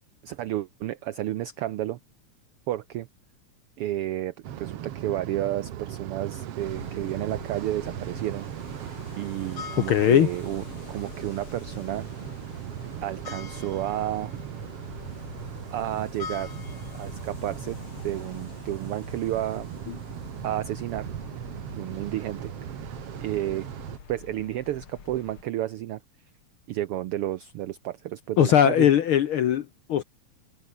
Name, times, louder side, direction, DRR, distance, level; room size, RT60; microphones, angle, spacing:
voice 1, 0.2-2.0 2.7-3.1 3.8-8.5 9.2-12.0 13.0-14.3 15.7-16.5 16.9-17.8 18.0-19.7 20.4-21.1 21.8-22.5 23.2-23.7 24.1-26.0 26.7-28.9, right 13 dB, 90° right, 1.2 m, -31 dB
sound 1, 4.4-24.0, right 11 dB, 60° right, 1.9 m, -38 dB
sound 2, 6.6-25.4, left 6 dB, 45° left, 3.2 m, -44 dB
voice 2, 9.9-10.3 28.4-30.0, left 10 dB, 65° left, 1.3 m, -20 dB
omnidirectional pair, 3.4 m